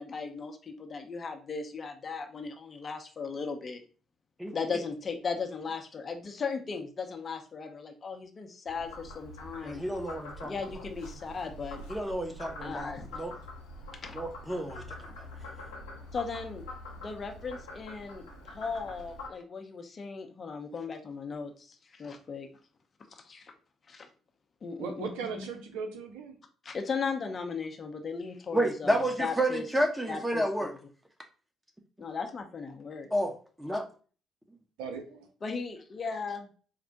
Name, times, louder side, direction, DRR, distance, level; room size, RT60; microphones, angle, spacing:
voice 1, 0.0-3.8 4.5-9.8 10.4-11.8 12.6-13.1 14.0-14.2 16.1-16.6 17.0-22.5 23.1-23.5 23.9-24.1 24.6-25.1 25.4-25.5 26.6-29.6 30.1-30.7 32.0-33.1 35.4-36.5, left 5 dB, 40° left, 5 dB, 0.6 m, -37 dB
Frog, 8.7-19.3, left 1 dB, 85° left, 0.8 m, -45 dB
voice 2, 9.6-10.5 11.9-13.3 14.1-15.2 28.5-30.7 32.0-32.1 33.1-33.9, right 1 dB, 10° right, 3 dB, 0.9 m, -30 dB
voice 3, 24.8-26.4 34.8-35.3, right 5 dB, 75° right, 5 dB, 0.5 m, -38 dB
4.3 x 2.1 x 2.7 m, 0.39 s
hypercardioid pair, 45°, 0 cm